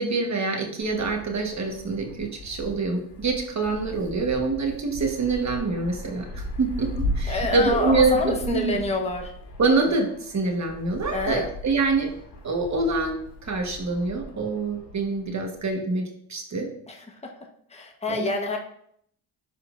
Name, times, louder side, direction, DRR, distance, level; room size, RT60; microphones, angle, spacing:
voice 1, 0.0-8.8 9.6-12.1 12.4-13.2 13.4-16.0 16.3-16.7 18.1-18.3, right 3 dB, 40° right, 2 dB, 1.4 m, -25 dB
Wind, 0.8-15.7, left 1 dB, 65° left, 2.2 m, -37 dB
voice 2, 7.3-9.3 11.1-11.5 16.9-17.3 17.7-18.6, left 2 dB, 15° left, 2 dB, 1.1 m, -28 dB
11.0 x 4.3 x 2.6 m, 0.67 s
cardioid pair, 85°, 45 cm